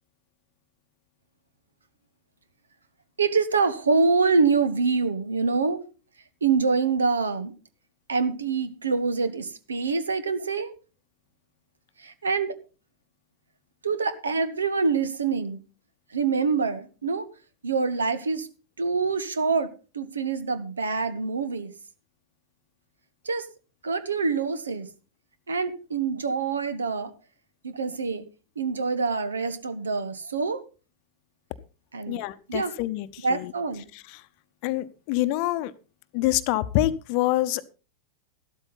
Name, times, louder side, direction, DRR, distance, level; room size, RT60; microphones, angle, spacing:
voice 1, 3.2-5.8 6.4-7.5 8.1-10.7 12.0-12.5 13.8-15.6 16.1-17.3 17.6-18.5 18.8-19.7 19.9-21.7 23.2-23.5 23.8-24.9 25.5-27.1 27.6-28.2 28.6-30.6 31.9-32.2 32.5-32.8 33.2-33.9, right 4 dB, 70° right, 13 dB, 1.2 m, -25 dB
voice 2, 32.1-33.5 34.6-35.7 36.1-37.7, left 15 dB, 45° left, 13 dB, 0.8 m, -26 dB
13.5 x 12.5 x 4.0 m, 0.34 s
figure-of-eight pair, 90°, 0 cm